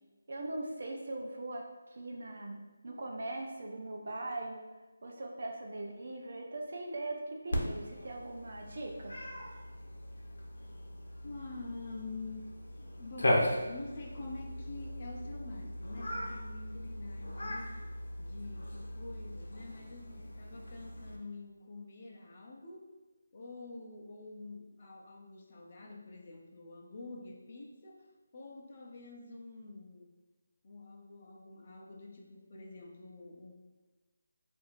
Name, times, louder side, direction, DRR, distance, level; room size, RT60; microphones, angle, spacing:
voice 1, 0.3-2.6 2.8-4.7 5.0-9.2, right 2 dB, 60° right, 1 dB, 0.7 m, -40 dB
Cat, 7.5-21.2, left 1 dB, 85° left, 0.8 m, -38 dB
voice 2, 11.2-17.8 18.2-22.9 23.3-30.1 30.6-33.5, left 3 dB, 40° left, 0 dB, 0.6 m, -47 dB
4.7 x 2.6 x 2.5 m, 1.2 s
figure-of-eight pair, 170°, 0 cm